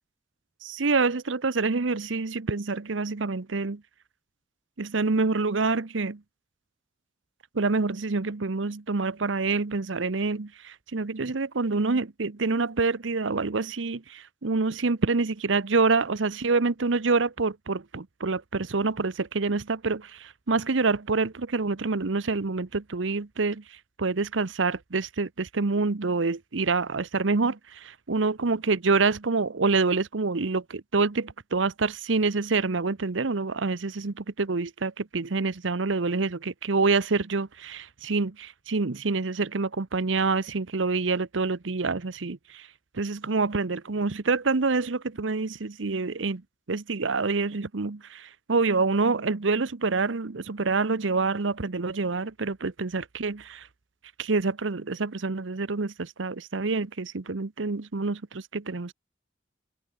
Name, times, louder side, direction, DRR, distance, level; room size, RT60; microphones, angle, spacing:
voice 1, 0.6-3.8 4.8-6.2 7.5-42.7 42.9-46.4 46.7-53.7 54.2-58.9, right 4 dB, 80° right, 0.9 m, -27 dB
head